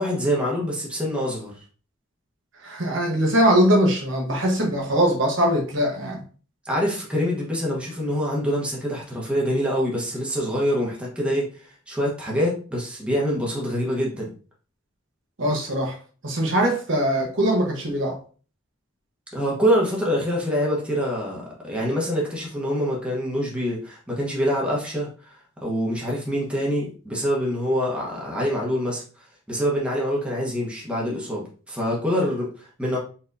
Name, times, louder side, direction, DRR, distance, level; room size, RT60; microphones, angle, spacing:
voice 1, 0.0-1.5 6.6-11.5 11.9-14.3 19.3-25.4 25.6-29.0 29.5-33.0, equal, 5° right, 1.2 m, -25 dB
voice 2, 2.6-6.2 15.4-16.0 16.2-18.2, equal, 70° right, 1.2 m, -21 dB
4.2 x 3.9 x 2.7 m
head